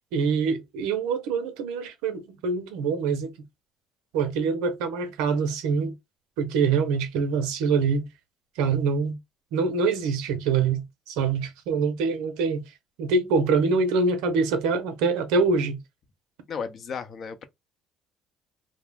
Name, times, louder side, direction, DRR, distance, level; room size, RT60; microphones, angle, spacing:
voice 1, 0.1-3.3 4.1-5.9 6.4-8.1 8.6-9.2 9.5-12.6 13.0-15.8, right 4 dB, 80° right, 0.6 m, -25 dB
voice 2, 16.5-17.5, left 6 dB, 50° left, 0.6 m, -34 dB
2.3 x 2.1 x 3.5 m
supercardioid pair, 70°, 0 cm